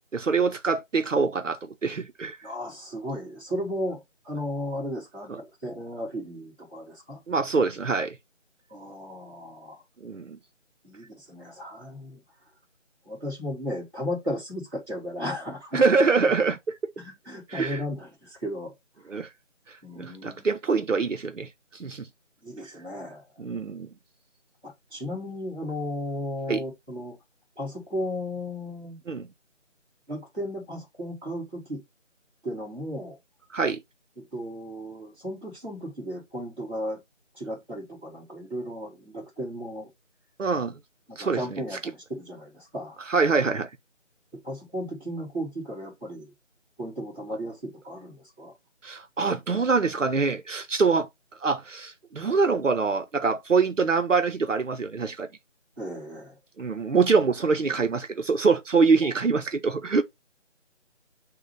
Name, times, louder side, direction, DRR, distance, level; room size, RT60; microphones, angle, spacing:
voice 1, 0.1-2.4 5.3-5.4 7.3-8.2 10.0-10.4 15.7-16.9 17.5-17.8 19.1-19.3 20.0-21.5 21.8-22.1 23.4-23.9 26.5-26.6 29.1-29.3 33.5-33.8 40.4-40.8 41.2-41.6 43.1-43.7 48.8-51.1 51.4-55.3 56.6-60.0, right 4 dB, 75° right, 0.9 m, -24 dB
voice 2, 2.4-7.2 8.7-9.8 10.8-12.2 13.1-15.8 17.0-18.7 19.0-19.1 19.8-20.5 22.4-23.3 24.6-27.2 27.6-29.0 30.1-31.8 32.4-33.2 34.2-37.0 37.3-39.9 41.1-43.0 44.3-46.3 46.8-48.5 55.8-56.4 59.0-59.1, equal, 10° right, 1.7 m, -35 dB
6.4 x 2.4 x 3.2 m
figure-of-eight pair, 175°, 38 cm